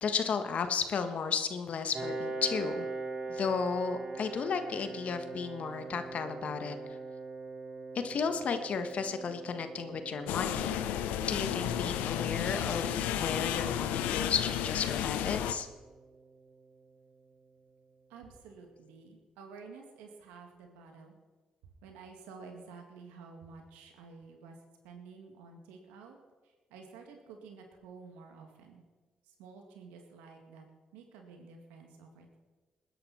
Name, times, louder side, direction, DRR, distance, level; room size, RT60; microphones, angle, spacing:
voice 1, 0.0-2.9 3.3-6.8 7.9-10.8 11.3-15.7, left 6 dB, 60° left, 9 dB, 1.4 m, -33 dB
Piano, 1.9-17.3, right 3 dB, 50° right, 3.1 m, -43 dB
sound 1, 10.3-15.5, left 10 dB, 85° left, 0.6 m, -32 dB
voice 2, 18.1-21.2 21.6-24.6 24.8-26.2 26.4-28.8 29.2-30.6 30.9-32.4, right 5 dB, 85° right, 3 dB, 2.2 m, -51 dB
20.0 x 10.5 x 4.3 m, 1.3 s
hypercardioid pair, 50°, 3 cm